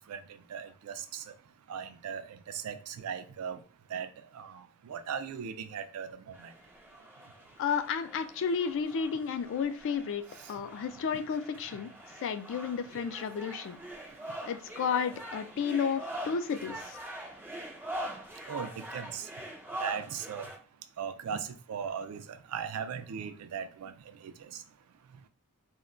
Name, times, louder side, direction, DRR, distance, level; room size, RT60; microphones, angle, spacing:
voice 1, 0.5-1.2 1.7-3.6 3.9-4.1 4.3-6.5 18.5-19.2 19.8-20.5 21.0-23.9 24.2-24.3, right 7 dB, 80° right, 10 dB, 0.4 m, -38 dB
sound 1, 6.3-20.6, right 1 dB, 10° right, 0.5 m, -44 dB
voice 2, 7.6-10.2 10.5-11.9 12.2-13.8 14.4-17.0, left 6 dB, 55° left, 10 dB, 0.3 m, -32 dB
2.2 x 2.1 x 3.6 m, 0.41 s
head